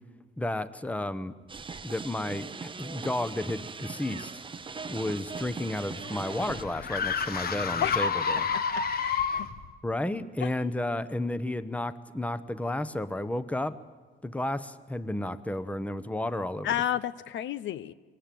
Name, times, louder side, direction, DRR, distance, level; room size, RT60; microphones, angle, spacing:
voice 1, 0.4-1.4 1.8-2.5 2.8-4.3 4.9-8.5 9.8-13.8 14.2-16.7, left 1 dB, 5° left, 14 dB, 0.8 m, -32 dB
sound 1, 1.5-6.6, right 5 dB, 25° right, 0.7 m, -40 dB
sound 2, 5.2-9.7, left 5 dB, 50° left, 1.2 m, -30 dB
voice 2, 9.0-9.5 10.4-10.5 16.6-17.9, left 11 dB, 70° left, 15 dB, 0.6 m, -31 dB
22.5 x 18.5 x 7.6 m, 1.4 s
cardioid pair, 90°, 20 cm